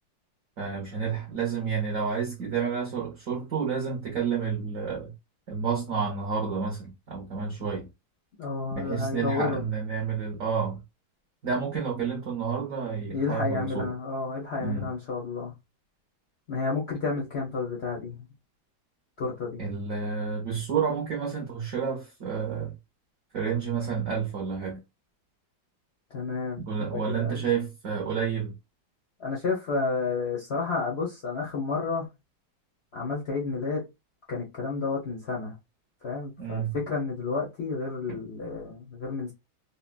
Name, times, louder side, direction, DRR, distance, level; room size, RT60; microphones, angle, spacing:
voice 1, 0.6-5.1 5.5-7.9 8.7-10.8 11.4-13.9 14.6-14.9 19.6-22.8 23.3-24.8 26.6-28.5 36.4-36.8 38.1-38.2, right 6 dB, 60° right, 0.9 m, -30 dB
voice 2, 8.4-9.6 13.1-15.5 16.5-18.3 19.2-19.6 26.1-26.6 26.9-27.4 29.2-32.1 32.9-33.8 34.3-35.6 36.0-39.3, left 4 dB, 70° left, 0.6 m, -31 dB
3.7 x 2.1 x 2.3 m
omnidirectional pair, 2.2 m